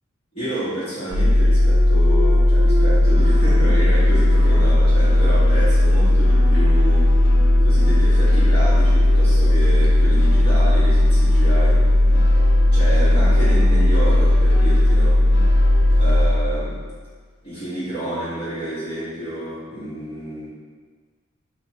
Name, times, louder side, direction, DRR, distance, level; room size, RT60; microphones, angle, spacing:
voice 1, 0.3-7.1 7.5-11.9 12.7-15.2 16.0-16.8 17.4-20.5, right 1 dB, 30° left, -12 dB, 1.1 m, -29 dB
sound 1, 1.1-16.9, left 1 dB, 50° right, 0.3 m, -15 dB
Thump thud, 1.4-5.4 5.9-10.5, left 2 dB, 5° left, 1.2 m, -35 dB
sound 2, 3.0-16.2, left 2 dB, 55° left, 0.4 m, -36 dB
3.2 x 2.1 x 3.8 m, 1.5 s
head